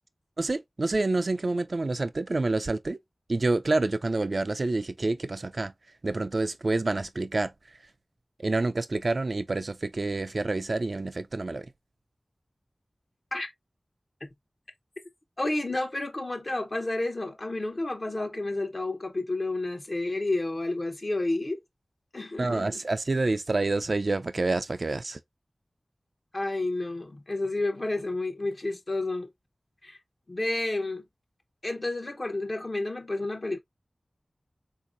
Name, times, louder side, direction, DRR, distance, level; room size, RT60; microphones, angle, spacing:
voice 1, 0.4-3.0 3.3-5.7 6.0-7.5 8.4-11.7 22.4-25.2, right 2 dB, 65° right, 0.4 m, -28 dB
voice 2, 15.4-21.6 22.1-22.8 26.3-29.3 29.8-30.0 30.3-31.0 31.6-33.6, left 2 dB, 55° left, 0.8 m, -30 dB
3.8 x 2.7 x 2.5 m
wide cardioid pair, 55°, 0 cm